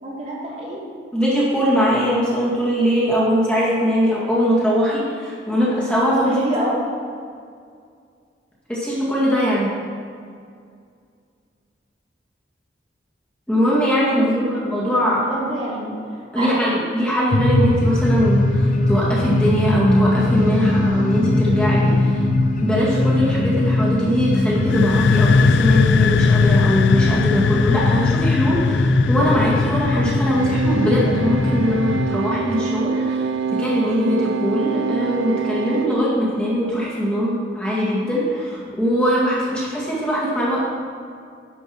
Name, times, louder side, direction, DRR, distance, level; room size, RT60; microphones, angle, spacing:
voice 1, 0.0-0.8 6.2-6.7 14.1-15.9 16.3-16.5, right 1 dB, 40° right, -6 dB, 2.5 m, -27 dB
voice 2, 1.1-6.3 8.7-9.7 13.5-15.2 16.3-22.2 22.6-33.3 33.6-40.6, equal, 5° left, -8 dB, 2.0 m, -21 dB
sound 1, 17.3-32.1, left 2 dB, 45° left, 0.7 m, -21 dB
sound 2, 24.5-32.2, left 5 dB, 70° left, 0.3 m, -20 dB
sound 3, 30.4-35.9, right 5 dB, 90° right, 0.3 m, -25 dB
11.0 x 5.4 x 6.2 m, 2.2 s
head